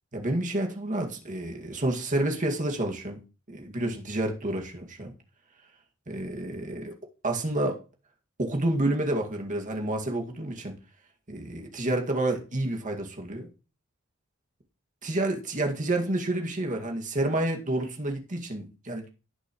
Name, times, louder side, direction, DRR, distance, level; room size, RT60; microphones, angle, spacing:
voice 1, 0.1-3.2 3.5-5.1 6.1-6.9 7.2-7.8 8.4-10.7 11.3-13.5 15.0-19.0, right 1 dB, 40° right, 2.1 m, -29 dB
18.5 x 6.2 x 3.1 m
head